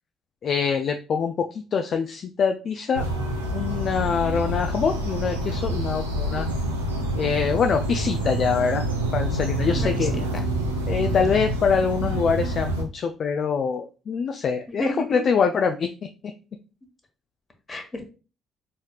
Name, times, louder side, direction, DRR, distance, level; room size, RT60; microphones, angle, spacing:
voice 1, 0.4-3.0 3.5-6.5 7.2-8.8 9.1-10.1 10.9-15.9, left 6 dB, 50° left, 5 dB, 0.3 m, -24 dB
sound 1, 2.9-12.8, right 1 dB, 90° right, 0.5 m, -27 dB
voice 2, 9.7-10.4 14.7-15.2 17.7-18.0, left 1 dB, 30° left, 4 dB, 1.2 m, -33 dB
4.2 x 3.2 x 2.3 m, 0.34 s
figure-of-eight pair, 45°, 0 cm